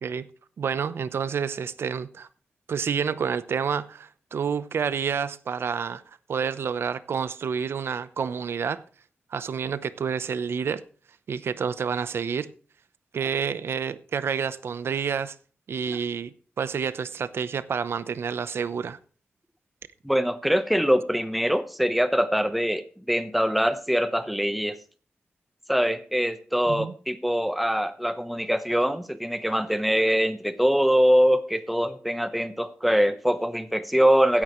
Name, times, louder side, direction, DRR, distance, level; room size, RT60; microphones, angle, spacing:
voice 1, 0.6-2.3 2.7-6.0 6.3-8.8 9.3-10.8 11.3-12.5 13.1-15.3 15.7-16.3 16.6-19.0 26.7-26.9, right 6 dB, 75° right, 0.8 m, -29 dB
voice 2, 20.0-24.8 25.7-34.4, equal, ahead, 1.0 m, -23 dB
16.0 x 9.7 x 3.2 m
wide cardioid pair, 110°, 4 cm